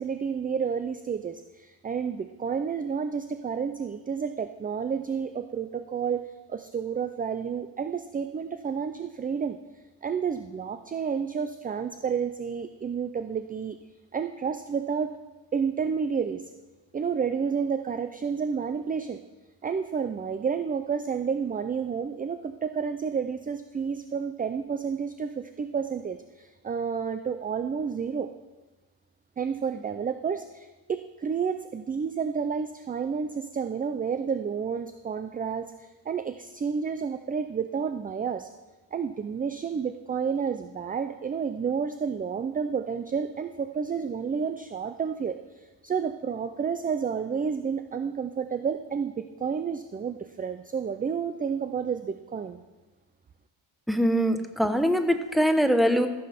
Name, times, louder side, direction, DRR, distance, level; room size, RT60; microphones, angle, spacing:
voice 1, 0.0-9.6 10.0-13.8 14.1-15.1 15.5-16.5 16.9-19.2 19.6-28.3 29.4-38.5 38.9-52.6, right 6 dB, 20° right, 9 dB, 0.4 m, -30 dB
voice 2, 53.9-56.1, equal, ahead, 7 dB, 0.9 m, -23 dB
14.5 x 7.7 x 5.8 m, 1.2 s
cardioid pair, 125°, 44 cm